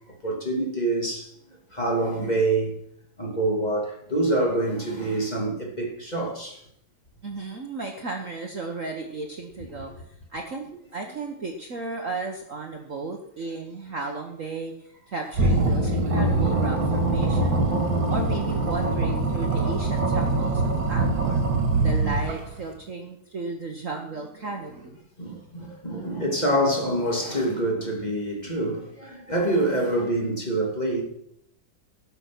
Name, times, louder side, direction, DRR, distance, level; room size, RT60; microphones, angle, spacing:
voice 1, 0.2-1.3 1.7-2.7 3.2-6.6 9.6-9.8 11.1-11.2 25.2-31.0, right 1 dB, 20° left, 2.8 m, -26 dB
voice 2, 7.2-17.6 18.1-21.4 21.8-25.0, right 3 dB, 45° right, 1.4 m, -34 dB
sound 1, 15.3-22.6, right 2 dB, 65° right, 2.9 m, -23 dB
18.0 x 7.0 x 6.1 m
omnidirectional pair, 2.3 m